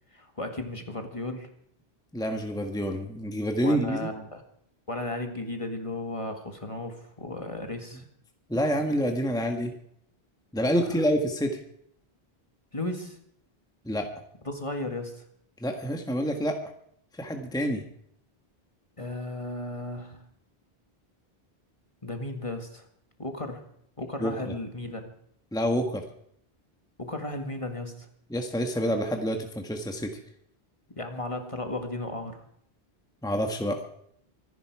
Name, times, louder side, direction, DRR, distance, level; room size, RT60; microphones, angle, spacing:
voice 1, 0.1-1.5 3.6-4.4 4.9-8.0 10.8-11.1 12.7-13.2 14.5-15.3 19.0-20.2 22.0-22.9 23.2-23.6 24.0-25.1 27.0-28.1 31.0-32.5, left 2 dB, 30° left, 5 dB, 1.9 m, -35 dB
voice 2, 2.1-4.1 8.5-9.7 10.5-11.6 13.8-14.1 15.6-16.6 17.2-17.8 24.2-24.5 25.5-26.0 28.3-30.1 33.2-33.8, equal, 5° left, 4 dB, 1.4 m, -27 dB
25.0 x 10.5 x 4.8 m, 0.69 s
omnidirectional pair, 1.1 m